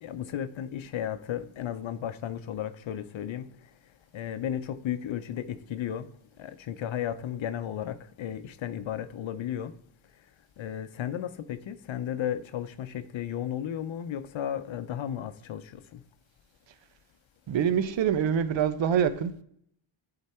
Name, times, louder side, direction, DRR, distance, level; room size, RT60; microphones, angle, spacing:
voice 1, 0.0-3.5 4.1-6.1 6.4-9.7 10.6-16.0, left 10 dB, 70° left, 0.7 m, -34 dB
voice 2, 17.5-19.3, right 8 dB, 65° right, 0.7 m, -25 dB
11.5 x 4.0 x 4.3 m
wide cardioid pair, 105°, 49 cm